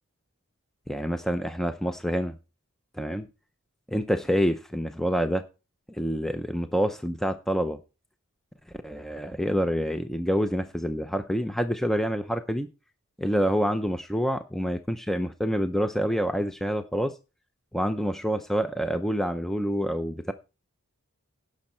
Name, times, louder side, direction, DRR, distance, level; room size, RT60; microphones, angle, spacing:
voice 1, 0.9-2.3 3.0-3.3 3.9-5.4 6.0-7.8 8.8-12.7 13.2-17.1 17.7-20.3, equal, ahead, 0.6 m, -27 dB
17.0 x 6.4 x 4.4 m
head